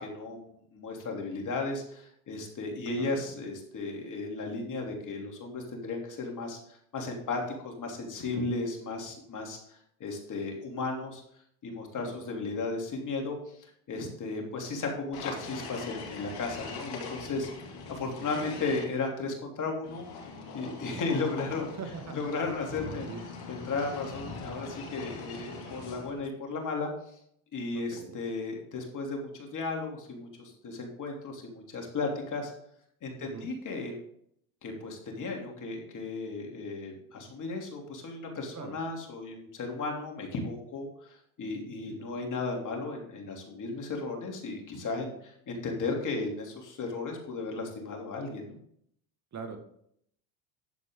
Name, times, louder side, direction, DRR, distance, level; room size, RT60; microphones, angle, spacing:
voice 1, 0.0-11.2 11.6-17.5 17.9-20.0 20.5-21.7 22.1-23.1 23.5-26.9 27.5-32.5 33.0-34.0 34.6-48.6, left 3 dB, 45° left, 1 dB, 3.1 m, -35 dB
voice 2, 2.9-3.2 12.0-12.3 18.2-18.6 21.7-22.1 22.8-23.2 27.7-28.2 33.2-33.5 38.5-38.8 41.9-42.4 49.3-49.6, right 5 dB, 40° right, 5 dB, 2.0 m, -43 dB
sound 1, 15.1-18.8 19.8-26.2, left 4 dB, 65° left, 2.8 m, -42 dB
11.0 x 7.6 x 3.8 m, 0.68 s
supercardioid pair, 85°, 41 cm